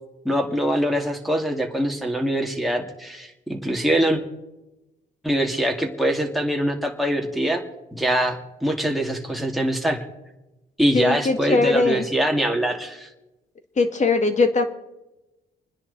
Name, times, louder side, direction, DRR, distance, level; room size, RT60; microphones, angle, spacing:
voice 1, 0.2-4.2 5.2-7.6 7.9-10.0 10.8-13.1, right 1 dB, ahead, 1 dB, 2.4 m, -23 dB
voice 2, 10.9-12.1 13.8-14.6, left 3 dB, 35° left, 7 dB, 2.0 m, -20 dB
27.0 x 10.0 x 4.1 m, 0.98 s
cardioid pair, 90°, 20 cm